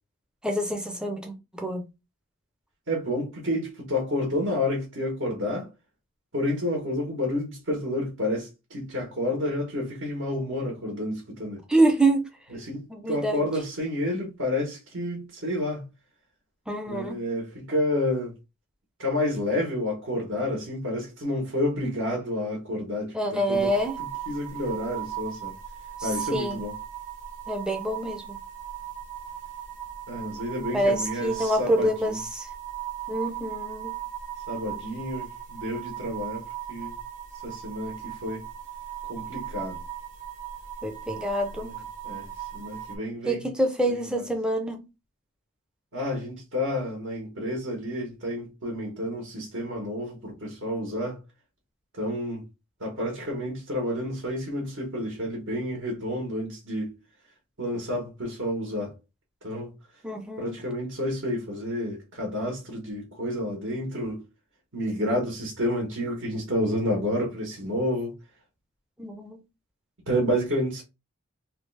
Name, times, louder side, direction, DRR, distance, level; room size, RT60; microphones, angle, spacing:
voice 1, 0.4-1.8 11.7-12.3 12.9-13.4 16.7-17.2 23.1-24.0 26.0-26.6 27.5-28.4 30.7-32.5 33.1-33.9 40.8-41.7 43.3-44.8 60.0-60.6 69.0-69.4, right 1 dB, 5° right, 0.5 m, -26 dB
voice 2, 2.9-5.7 6.3-11.6 12.6-12.8 13.1-15.9 16.9-18.3 19.0-25.5 26.0-26.7 30.1-32.2 34.5-36.4 36.7-36.9 37.4-38.4 39.1-39.8 41.5-42.3 42.5-43.5 43.9-44.2 45.9-51.2 52.0-52.4 52.8-56.9 57.6-58.9 59.4-59.7 60.4-64.2 64.7-68.1 70.1-70.8, left 1 dB, 65° right, 1.2 m, -30 dB
sound 1, 23.5-43.0, right 11 dB, 35° right, 0.8 m, -38 dB
3.3 x 2.3 x 3.2 m
head